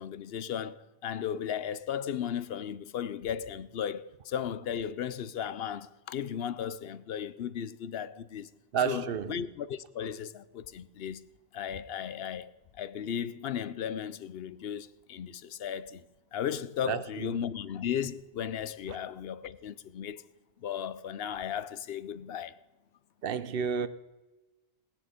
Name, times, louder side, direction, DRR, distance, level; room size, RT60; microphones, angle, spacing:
voice 1, 0.0-8.5 8.8-11.2 11.5-12.5 12.8-16.0 16.3-20.2 20.6-22.6, left 8 dB, 70° left, 0.8 m, -35 dB
voice 2, 8.7-9.4 16.9-17.3 23.2-23.9, right 7 dB, 65° right, 0.8 m, -31 dB
17.5 x 10.5 x 5.1 m
omnidirectional pair, 1.1 m